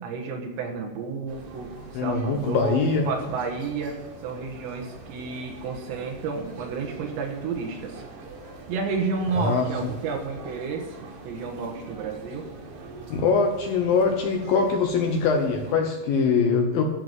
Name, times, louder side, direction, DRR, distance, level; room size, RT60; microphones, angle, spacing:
voice 1, 0.0-8.0 8.7-11.0 11.2-12.5, right 5 dB, 75° right, 2 dB, 3.6 m, -31 dB
sound 1, 1.3-15.8, right 3 dB, 50° right, 2.9 m, -43 dB
voice 2, 1.9-3.1 9.4-9.6 13.1-16.8, left 5 dB, 70° left, 3 dB, 2.4 m, -23 dB
13.5 x 5.9 x 9.3 m, 1.2 s
omnidirectional pair, 5.2 m